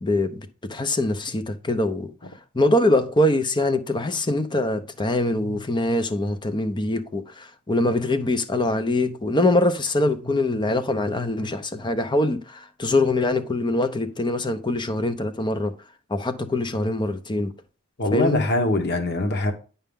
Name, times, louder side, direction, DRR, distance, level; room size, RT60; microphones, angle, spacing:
voice 1, 0.0-2.1 2.5-15.7 16.1-17.5 18.1-18.4, left 2 dB, 20° left, 0.7 m, -23 dB
voice 2, 18.0-19.5, left 2 dB, 45° left, 1.2 m, -22 dB
10.5 x 5.6 x 3.6 m
head